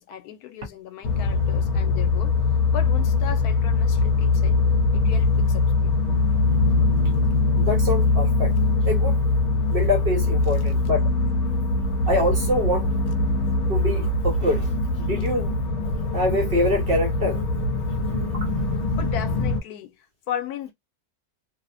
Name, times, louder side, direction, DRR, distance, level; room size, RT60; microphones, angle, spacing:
voice 1, 0.0-2.4 2.7-4.7 4.9-6.0 19.0-19.9 20.3-20.7, left 9 dB, 80° left, 1.1 m, -36 dB
sound 1, 1.0-19.6, left 3 dB, 60° left, 0.9 m, -22 dB
voice 2, 7.5-8.5 8.8-9.2 9.7-11.1 12.1-12.9 13.7-14.7 15.0-15.5 16.1-17.4 18.0-18.6, left 1 dB, 45° right, 0.9 m, -25 dB
2.7 x 2.0 x 2.5 m
omnidirectional pair, 1.6 m